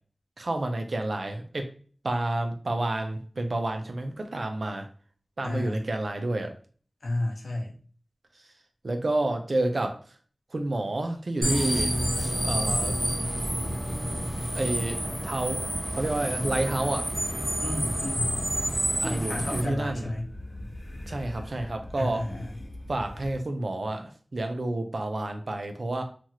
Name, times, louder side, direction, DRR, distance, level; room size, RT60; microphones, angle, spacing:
voice 1, 0.4-1.7 2.0-4.9 5.4-6.5 8.8-9.9 10.5-11.9 12.4-12.9 14.5-15.6 15.9-17.0 19.0-20.1 21.1-22.2 22.9-26.0, right 2 dB, 70° right, 5 dB, 0.5 m, -29 dB
voice 2, 5.4-5.8 7.0-7.8 17.6-18.4 19.0-20.3 21.9-22.5, left 1 dB, 90° left, 0 dB, 0.7 m, -32 dB
sound 1, 11.4-19.6, equal, 20° right, 1.1 m, -29 dB
sound 2, 15.6-23.4, left 1 dB, 50° left, 0.9 m, -42 dB
3.0 x 2.4 x 2.8 m, 0.43 s
wide cardioid pair, 50°, 0 cm